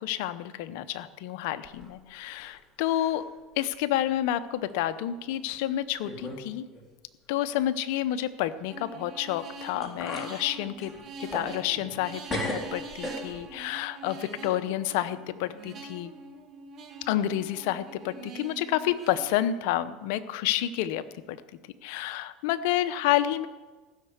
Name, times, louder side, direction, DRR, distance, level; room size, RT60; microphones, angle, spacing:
voice 1, 0.0-3.2 3.6-6.7 7.3-10.9 11.2-16.1 17.0-21.4 21.8-23.5, left 12 dB, 75° left, 13 dB, 0.7 m, -29 dB
sound 1, 1.6-2.5 2.8-3.3 3.7-3.8 4.7-4.8 5.5-5.6 6.0-6.5 6.7-6.8 9.4-9.5 9.8-10.3 10.8-12.0 12.3-13.6, left 1 dB, 20° left, 3.6 m, -37 dB
sound 2, 8.7-19.2, right 3 dB, 40° right, 3.0 m, -44 dB
16.0 x 6.7 x 8.0 m, 1.3 s
supercardioid pair, 105°, 0 cm